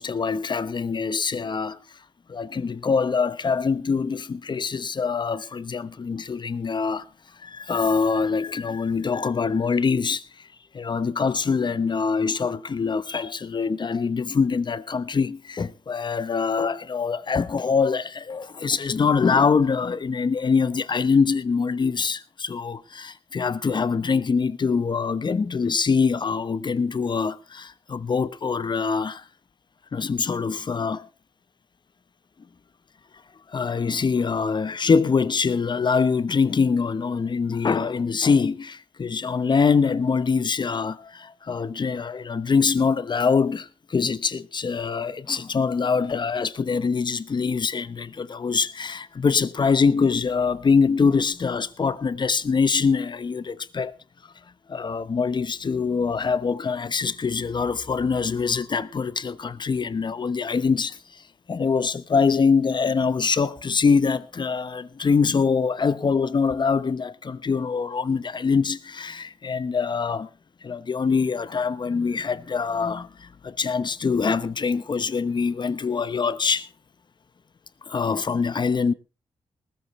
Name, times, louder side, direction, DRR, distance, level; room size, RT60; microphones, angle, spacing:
voice 1, 0.0-1.8 2.3-7.0 7.4-10.2 10.7-29.2 29.9-31.1 33.5-53.9 54.7-61.0 61.5-70.3 70.6-76.7 77.9-78.9, left 5 dB, 45° left, 1.0 m, -24 dB
19.5 x 13.5 x 3.2 m
cardioid pair, 85°, 11 cm